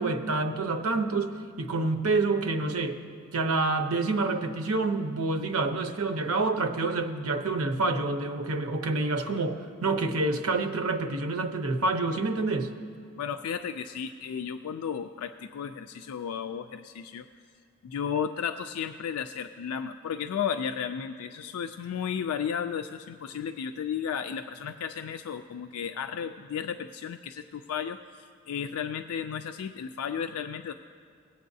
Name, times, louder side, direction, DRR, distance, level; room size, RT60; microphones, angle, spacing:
voice 1, 0.0-3.0 3.3-12.7, right 3 dB, 90° right, 7 dB, 0.8 m, -27 dB
voice 2, 13.2-17.3 17.8-30.7, left 7 dB, 90° left, 8 dB, 0.4 m, -34 dB
20.0 x 8.3 x 2.7 m, 2.2 s
head